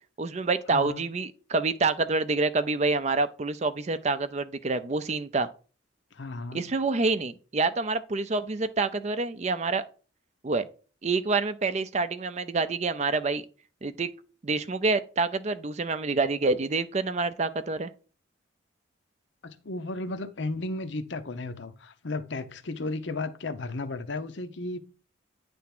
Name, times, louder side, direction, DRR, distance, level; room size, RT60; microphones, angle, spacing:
voice 1, 0.2-5.5 6.5-9.8 10.4-10.7 11.0-13.4 13.8-14.1 14.4-17.9, right 3 dB, 35° right, 0.4 m, -27 dB
voice 2, 0.7-1.0 6.1-6.7 19.4-24.8, left 2 dB, 60° left, 0.7 m, -34 dB
9.5 x 3.5 x 5.9 m
head